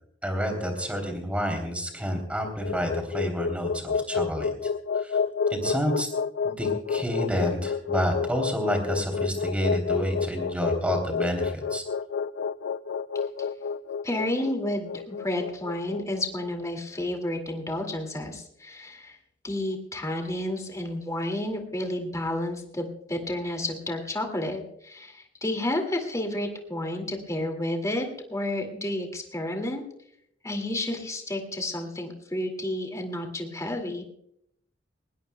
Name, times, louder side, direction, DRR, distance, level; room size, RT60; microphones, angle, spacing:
voice 1, 0.2-4.5 4.9-5.2 5.5-6.1 6.4-11.8, equal, 5° right, 4 dB, 3.2 m, -29 dB
sound 1, 2.3-16.5, left 6 dB, 65° left, 0.4 m, -29 dB
voice 2, 14.0-19.2 19.4-29.8 30.4-34.0, left 1 dB, 15° left, 3 dB, 2.3 m, -31 dB
20.5 x 19.0 x 2.3 m, 0.72 s
head